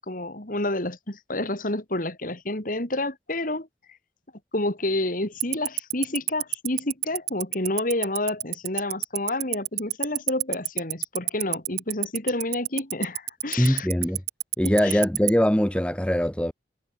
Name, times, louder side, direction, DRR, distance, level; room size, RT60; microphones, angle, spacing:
voice 1, 0.0-3.7 4.5-13.9 14.6-15.0, left 1 dB, 50° left, 4.0 m, -29 dB
Tick-tock, 5.4-15.3, right 18 dB, 65° right, 1.7 m, -25 dB
voice 2, 13.6-14.2 14.6-16.5, equal, 5° left, 1.3 m, -22 dB
head